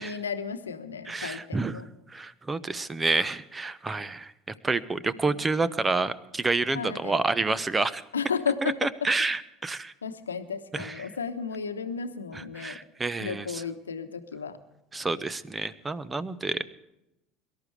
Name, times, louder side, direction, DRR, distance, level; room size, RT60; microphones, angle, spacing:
voice 1, 0.0-1.9 5.3-5.4 6.7-7.2 8.1-8.8 10.0-12.8 13.2-14.6, left 6 dB, 80° left, 9 dB, 1.0 m, -33 dB
voice 2, 1.1-1.8 2.1-4.3 4.6-8.0 8.6-9.9 10.7-11.1 12.3-13.6 14.9-16.6, right 3 dB, 20° right, 17 dB, 0.9 m, -29 dB
23.5 x 12.5 x 3.3 m, 0.89 s
figure-of-eight pair, 70°, 0 cm